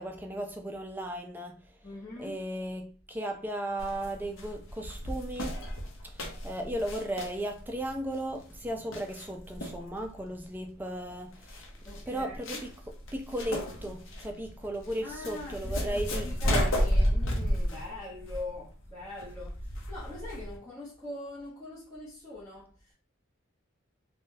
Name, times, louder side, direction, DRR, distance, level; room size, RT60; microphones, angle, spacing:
voice 1, 0.0-1.6 2.2-5.6 6.4-11.4 12.1-12.7 13.1-16.8, right 1 dB, 10° right, 0.4 m, -35 dB
voice 2, 1.8-2.4 11.8-12.6 15.0-22.9, left 2 dB, 15° left, 1.1 m, -43 dB
sound 1, 3.8-20.6, equal, 75° left, 0.7 m, -33 dB
3.4 x 2.3 x 2.7 m
head